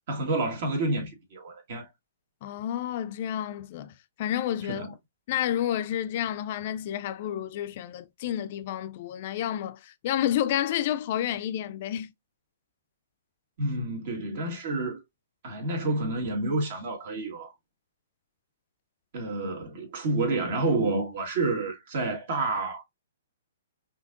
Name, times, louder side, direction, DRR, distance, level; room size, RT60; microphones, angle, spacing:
voice 1, 0.1-1.9 4.7-4.9 13.6-15.0 15.4-17.5 19.1-22.8, right 2 dB, 55° right, 1.7 m, -29 dB
voice 2, 2.4-4.9 5.3-12.1, left 11 dB, 50° left, 0.4 m, -30 dB
5.5 x 2.8 x 2.5 m
hypercardioid pair, 135°, 0 cm